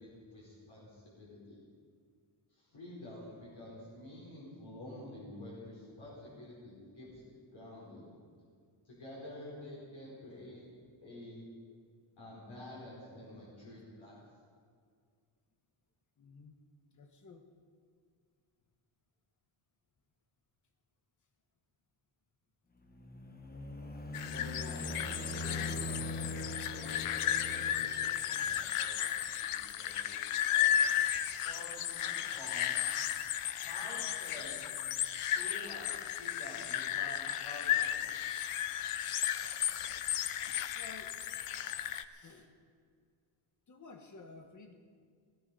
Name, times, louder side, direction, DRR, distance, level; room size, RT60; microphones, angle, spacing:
voice 1, 0.0-1.6 2.5-8.1 8.8-10.7 11.0-11.5 12.2-14.2 24.2-26.2 26.8-30.8 31.4-32.8 33.6-34.7 35.3-38.0, left 1 dB, 65° left, -6 dB, 4.7 m, -49 dB
voice 2, 16.2-16.5 16.9-17.5 40.7-41.2 42.1-42.5 43.7-44.7, left 3 dB, 35° left, 6 dB, 1.3 m, -53 dB
sound 1, 22.9-28.6, left 2 dB, 20° left, 1.0 m, -41 dB
sound 2, 24.1-42.0, left 10 dB, 90° left, 0.7 m, -34 dB
17.0 x 14.5 x 5.5 m, 2.1 s
wide cardioid pair, 170°, 50 cm